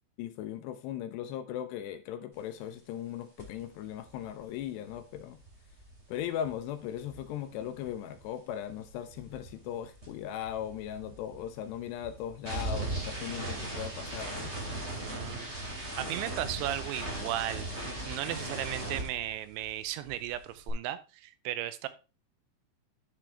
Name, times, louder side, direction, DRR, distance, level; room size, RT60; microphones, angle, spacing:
voice 1, 0.2-5.4 6.1-14.5, left 10 dB, 80° left, 2.6 m, -38 dB
sound 1, 3.4-3.6 3.9-8.3 8.5-19.8 20.0-20.7, right 2 dB, 20° right, 2.0 m, -39 dB
voice 2, 15.0-15.5 16.0-21.9, right 13 dB, 90° right, 3.1 m, -36 dB
11.0 x 6.2 x 3.3 m
omnidirectional pair, 5.2 m